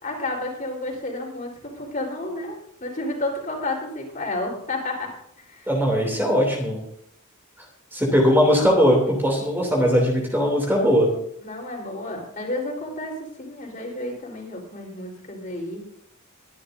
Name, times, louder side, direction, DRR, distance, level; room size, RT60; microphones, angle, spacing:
voice 1, 0.0-5.1 5.5-5.7 11.4-13.1 13.4-15.8, left 2 dB, 40° left, -1 dB, 4.1 m, -31 dB
voice 2, 5.7-6.8 7.9-11.1, equal, 10° right, -1 dB, 2.9 m, -19 dB
22.0 x 11.5 x 2.7 m, 0.70 s
head